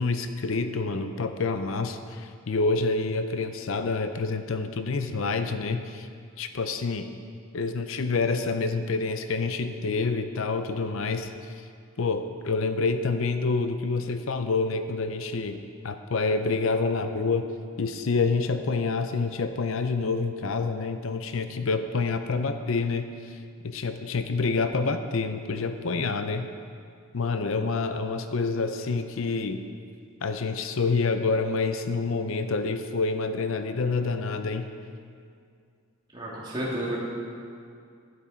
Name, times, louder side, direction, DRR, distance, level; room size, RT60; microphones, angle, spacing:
voice 1, 0.0-6.1 6.4-7.1 7.5-11.3 12.0-17.5 17.8-23.4 23.6-26.5 27.1-29.6 30.2-34.7, left 4 dB, 70° left, 8 dB, 0.5 m, -27 dB
voice 2, 36.1-37.1, right 1 dB, 20° right, -6 dB, 2.5 m, -31 dB
12.0 x 9.5 x 4.4 m, 2.3 s
head